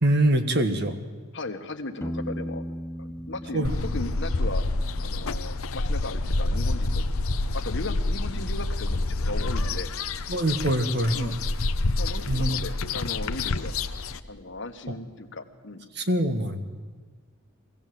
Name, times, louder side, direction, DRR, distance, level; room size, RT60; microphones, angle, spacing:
voice 1, 0.0-1.0 3.5-3.7 10.3-11.3 12.3-12.6 16.0-16.7, right 1 dB, 50° right, 8 dB, 1.5 m, -24 dB
voice 2, 1.3-2.6 3.0-4.6 5.0-7.1 7.5-9.9 11.1-11.7 12.0-13.7 14.3-15.9, left 2 dB, 55° left, 6 dB, 1.5 m, -37 dB
Piano, 2.0-5.7, equal, 10° left, 0.5 m, -37 dB
sound 1, 3.6-14.2, left 2 dB, 70° left, 0.8 m, -28 dB
22.5 x 16.5 x 7.7 m, 1.5 s
head